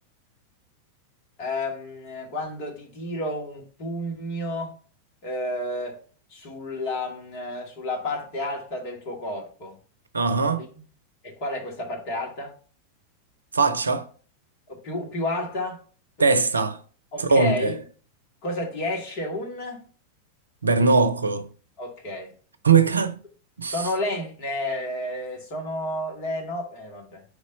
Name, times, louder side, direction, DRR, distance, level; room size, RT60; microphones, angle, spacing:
voice 1, 1.4-4.8 5.2-6.0 6.3-9.8 10.6-10.8 11.2-12.6 14.7-15.8 16.2-16.3 17.1-17.8 18.4-19.9 21.8-22.3 23.7-27.3, left 1 dB, 45° left, 2.0 m, -31 dB
voice 2, 10.1-10.6 13.5-14.1 16.2-16.8 17.3-17.7 20.6-21.5 22.6-23.2 23.6-23.7, right 4 dB, 75° right, 0.6 m, -20 dB
4.7 x 4.1 x 5.4 m
figure-of-eight pair, 90°, 0 cm